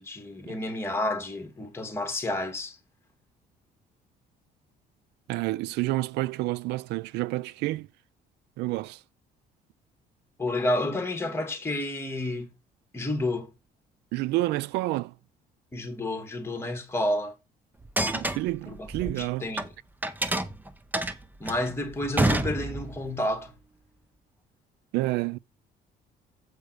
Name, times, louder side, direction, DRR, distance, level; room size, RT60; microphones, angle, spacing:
voice 1, 0.0-2.8 10.4-12.5 12.9-13.5 15.7-17.4 18.7-19.7 21.4-23.5, left 1 dB, 15° left, 2.7 m, -30 dB
voice 2, 5.3-7.9 8.6-9.0 14.1-15.1 18.1-19.6 24.9-25.4, right 18 dB, 85° right, 0.5 m, -29 dB
sound 1, 17.8-19.7 20.0-23.1, right 1 dB, 10° right, 1.0 m, -28 dB
8.0 x 5.1 x 5.0 m
cardioid pair, 110°, 17 cm